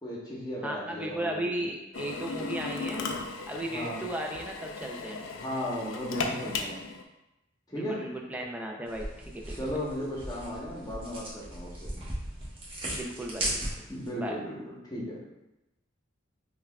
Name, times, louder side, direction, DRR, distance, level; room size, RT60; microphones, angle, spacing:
voice 1, 0.0-1.7 3.7-4.0 5.3-6.8 7.7-8.0 9.6-11.9 13.9-15.2, equal, 20° left, -5 dB, 0.9 m, -36 dB
voice 2, 0.6-3.1 3.5-5.3 7.7-9.8 12.9-13.6 14.2-14.4, right 1 dB, 10° right, 0 dB, 0.4 m, -36 dB
Drill, 1.9-7.0, left 4 dB, 85° left, 0.4 m, -36 dB
sound 1, 8.9-14.1, right 1 dB, 30° right, 0.9 m, -37 dB
5.5 x 2.3 x 2.3 m, 0.94 s
head